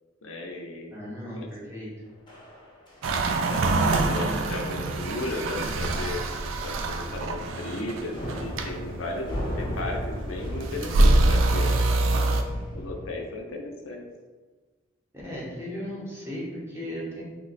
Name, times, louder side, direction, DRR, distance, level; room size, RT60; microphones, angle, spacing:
voice 1, 0.2-0.9 1.4-1.5 3.4-6.2 6.6-9.3 9.5-11.8 12.7-14.0, left 2 dB, 70° left, 2 dB, 0.5 m, -35 dB
voice 2, 0.9-1.9 15.2-17.2, equal, 15° right, -6 dB, 0.8 m, -36 dB
sound 1, 2.3-3.1 3.4-3.8 4.0-4.3 4.6-4.8 5.2-5.3 5.7-6.1 6.3-6.5 6.9-7.8 8.1-13.1, equal, 25° left, 0.6 m, -37 dB
sound 2, 3.0-12.4, right 2 dB, 70° right, 0.3 m, -25 dB
2.9 x 2.2 x 3.9 m, 1.4 s
head